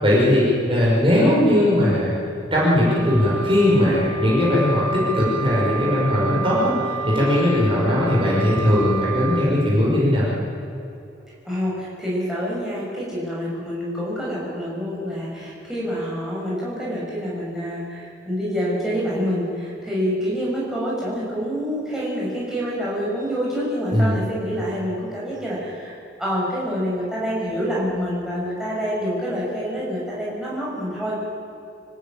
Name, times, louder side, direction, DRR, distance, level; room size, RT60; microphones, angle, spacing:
voice 1, 0.0-2.1 2.5-10.2 23.9-24.1, left 1 dB, 25° right, -6 dB, 5.6 m, -19 dB
Wind instrument woodwind instrument, 2.8-9.5, right 3 dB, 85° right, 2.8 m, -30 dB
voice 2, 11.4-31.2, equal, 5° right, -7 dB, 6.2 m, -27 dB
26.0 x 14.5 x 9.0 m, 2.7 s
head